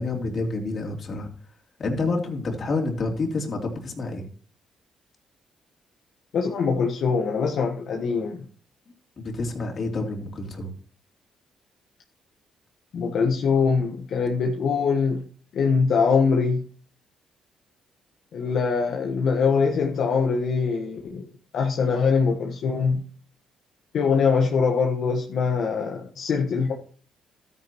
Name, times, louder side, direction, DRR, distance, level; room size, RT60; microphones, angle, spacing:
voice 1, 0.0-1.3 1.8-4.3 9.2-10.7, left 3 dB, 45° left, 1 dB, 3.2 m, -28 dB
voice 2, 6.3-8.4 12.9-15.2 15.5-16.6 18.3-21.2 21.5-23.0 23.9-26.7, left 5 dB, 70° left, 1 dB, 1.3 m, -23 dB
13.0 x 9.5 x 3.1 m, 0.43 s
cardioid pair, 90°, 0 cm